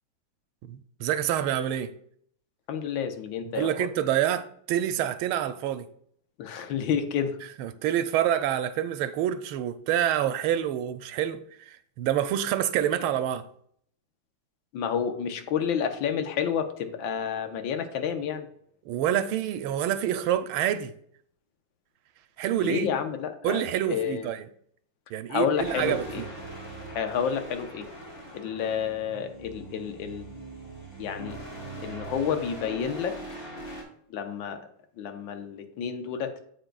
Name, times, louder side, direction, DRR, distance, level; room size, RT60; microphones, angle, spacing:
voice 1, 0.6-1.9 3.5-5.9 7.6-13.4 18.8-20.9 22.4-22.9 23.4-24.5 25.1-26.3, right 11 dB, 80° right, 1.4 m, -27 dB
voice 2, 2.7-3.9 6.4-7.4 14.7-18.5 22.6-23.6 23.9-24.3 25.3-26.2 26.9-27.9 28.3-30.3 31.0-31.4 31.8-33.2 34.1-34.6 35.0-36.4, left 7 dB, 70° left, 1.6 m, -30 dB
sound 1, 25.6-33.8, right 2 dB, 30° left, 3.5 m, -41 dB
15.0 x 5.1 x 2.3 m
omnidirectional pair, 2.4 m